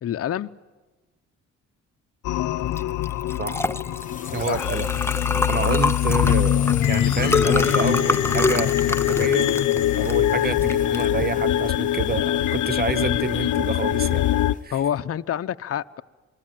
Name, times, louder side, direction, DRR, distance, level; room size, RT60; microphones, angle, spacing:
voice 1, 0.0-0.5 4.5-4.7 10.2-10.3 14.7-16.0, left 10 dB, 50° left, 0.8 m, -27 dB
sound 1, 2.2-14.5, left 12 dB, 80° left, 0.8 m, -23 dB
Liquid, 2.7-12.9, left 3 dB, 10° left, 0.7 m, -27 dB
sound 2, 3.9-14.6, left 5 dB, 25° left, 1.1 m, -37 dB
voice 2, 4.3-4.9 5.5-9.5 10.0-14.3 14.6-14.8, right 5 dB, 30° right, 1.0 m, -29 dB
27.5 x 20.5 x 9.1 m
cardioid pair, 90°, 30 cm